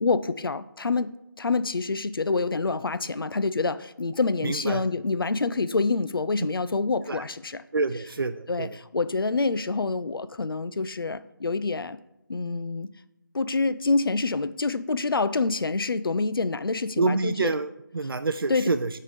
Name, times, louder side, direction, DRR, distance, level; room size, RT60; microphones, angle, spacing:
voice 1, 0.0-7.6 8.5-12.0 12.3-12.9 13.3-17.5 18.5-18.7, left 3 dB, 85° left, 14 dB, 0.4 m, -27 dB
voice 2, 4.4-4.8 7.1-7.2 7.7-8.7 17.0-18.9, right 3 dB, 80° right, 10 dB, 0.4 m, -27 dB
6.3 x 3.8 x 4.9 m, 0.84 s
figure-of-eight pair, 160°, 12 cm